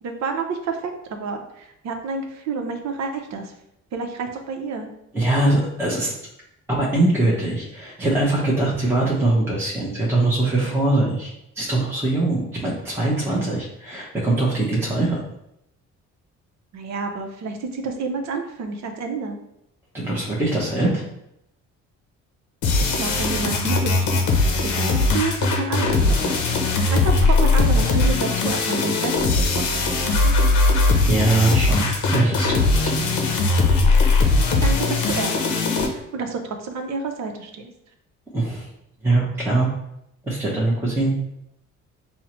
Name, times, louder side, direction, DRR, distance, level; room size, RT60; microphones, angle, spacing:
voice 1, 0.0-3.5 3.9-4.9 13.3-13.4 16.7-19.4 22.8-24.3 24.6-30.3 34.3-35.4 35.8-37.7, right 4 dB, 65° right, 4 dB, 0.7 m, -29 dB
voice 2, 5.1-6.1 6.7-11.3 11.6-15.2 19.9-21.0 31.1-33.4 33.7-34.3 38.3-38.7 39.0-39.7 40.2-41.1, right 2 dB, 10° right, -6 dB, 0.8 m, -22 dB
sound 1, 22.6-35.9, left 3 dB, 80° left, 0.7 m, -19 dB
5.3 x 2.1 x 3.0 m, 0.81 s
cardioid pair, 90°, 30 cm